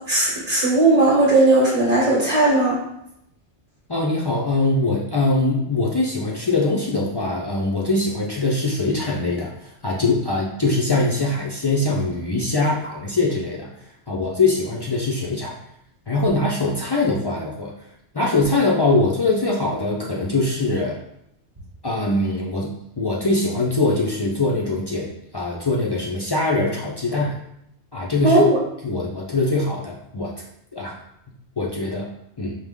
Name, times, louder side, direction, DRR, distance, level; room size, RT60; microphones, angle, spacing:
voice 1, 0.1-2.8 28.2-28.6, right 2 dB, 40° right, -5 dB, 1.0 m, -17 dB
voice 2, 3.9-13.7 14.1-15.5 16.1-17.7 18.1-21.0 21.8-27.4 27.9-28.4 28.8-30.3 30.7-30.9 31.6-32.1 32.4-32.5, left 2 dB, 40° left, -4 dB, 0.3 m, -22 dB
4.8 x 2.1 x 3.5 m, 0.77 s
omnidirectional pair, 1.2 m